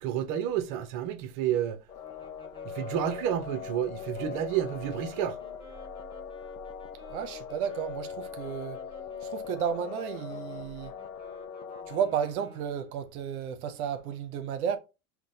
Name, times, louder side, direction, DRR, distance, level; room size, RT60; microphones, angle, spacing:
voice 1, 0.0-1.8 2.6-5.4, right 10 dB, 45° right, 0.7 m, -30 dB
sound 1, 1.9-12.0, left 7 dB, 85° left, 0.7 m, -41 dB
sound 2, 2.0-13.0, left 2 dB, 10° left, 1.3 m, -54 dB
voice 2, 7.1-8.8 9.2-10.9 11.9-14.8, right 8 dB, 85° right, 0.7 m, -32 dB
5.8 x 2.1 x 2.7 m
hypercardioid pair, 100°, 42 cm